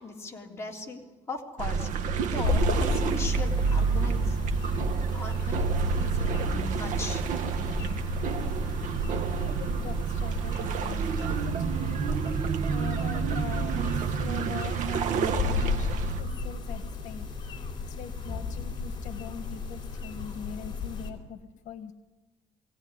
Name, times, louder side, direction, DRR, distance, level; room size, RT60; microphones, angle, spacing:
voice 1, 0.0-1.9 2.3-4.4 5.1-7.3, left 3 dB, 20° left, -1 dB, 3.5 m, -39 dB
sound 1, 1.6-16.2, right 5 dB, 80° right, 1.4 m, -29 dB
sound 2, 2.4-21.1, left 4 dB, 35° left, 4.2 m, -35 dB
voice 2, 9.3-11.0 11.4-12.0 12.7-17.3 17.9-21.4 21.6-21.9, left 7 dB, 75° left, 9 dB, 1.5 m, -42 dB
Marimba xylophone, 10.9-16.4, right 6 dB, 60° right, 1.5 m, -33 dB
22.0 x 17.5 x 9.8 m, 1.2 s
cardioid pair, 145°, 13 cm